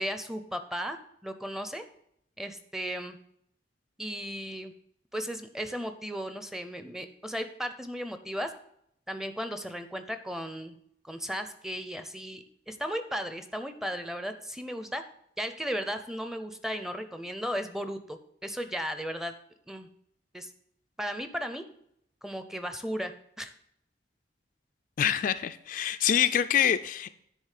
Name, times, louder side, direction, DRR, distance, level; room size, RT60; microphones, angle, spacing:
voice 1, 0.0-1.8 2.4-3.2 4.0-4.7 5.1-8.5 9.1-10.8 11.0-15.0 15.4-19.3 19.7-19.9 20.3-20.5 21.0-21.6 22.2-23.1 23.4-23.5, equal, 5° right, 9 dB, 0.5 m, -35 dB
voice 2, 25.0-27.1, left 9 dB, 50° left, 10 dB, 0.3 m, -25 dB
9.9 x 3.9 x 6.5 m, 0.72 s
head